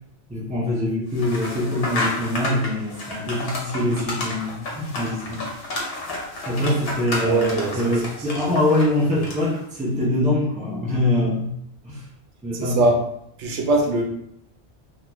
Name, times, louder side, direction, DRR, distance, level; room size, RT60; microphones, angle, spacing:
voice 1, 0.3-5.5 6.5-7.4 7.7-11.5 11.8-12.0 12.4-12.9, left 1 dB, 10° right, -5 dB, 0.5 m, -24 dB
sound 1, 1.1-9.6, left 2 dB, 65° left, 0.9 m, -31 dB
voice 2, 7.2-8.0 9.1-9.3 12.5-13.0 13.4-14.0, right 2 dB, 85° right, 1 dB, 0.9 m, -22 dB
2.4 x 2.4 x 3.0 m, 0.75 s
omnidirectional pair, 1.1 m